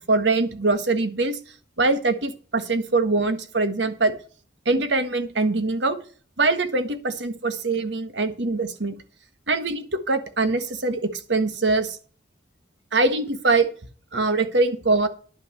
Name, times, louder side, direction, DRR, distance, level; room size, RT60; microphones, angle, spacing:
voice 1, 0.1-1.4 1.8-4.1 4.6-6.0 6.4-8.9 9.5-12.0 12.9-13.7 14.1-15.1, right 3 dB, 85° right, 9 dB, 1.5 m, -23 dB
10.5 x 5.9 x 7.7 m, 0.40 s
head